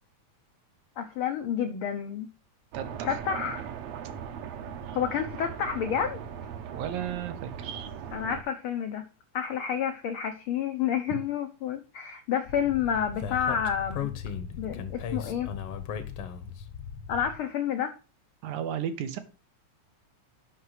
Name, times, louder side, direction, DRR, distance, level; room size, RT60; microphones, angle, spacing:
voice 1, 1.0-2.3 3.0-3.7 4.9-6.2 8.1-9.0 9.3-14.1 14.6-15.5 17.1-17.9, left 8 dB, 80° left, 7 dB, 1.2 m, -29 dB
sound 1, 2.7-8.4, right 8 dB, 70° right, 1.9 m, -39 dB
voice 2, 2.7-3.2 6.7-7.9 18.4-19.2, right 9 dB, 90° right, 9 dB, 2.4 m, -34 dB
Speech, 12.5-17.4, left 7 dB, 65° left, 1.6 m, -37 dB
6.4 x 5.7 x 5.6 m, 0.34 s
omnidirectional pair, 3.3 m